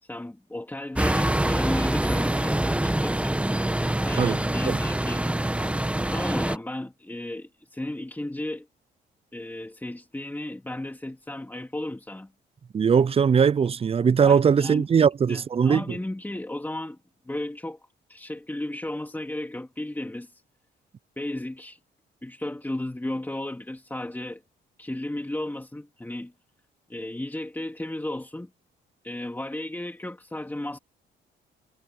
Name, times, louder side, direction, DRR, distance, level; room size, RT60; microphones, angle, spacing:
voice 1, 0.0-3.4 4.0-5.2 6.1-8.7 9.3-12.3 14.3-17.0 17.3-17.8 18.1-20.4 21.2-21.8 22.2-24.4 24.8-26.3 26.9-28.5 29.0-30.8, left 1 dB, 10° left, 2.7 m, -34 dB
sound 1, 0.9-6.6, right 1 dB, 5° right, 1.1 m, -25 dB
voice 2, 12.7-16.0, right 6 dB, 30° right, 0.4 m, -20 dB
cardioid pair, 90°, 20 cm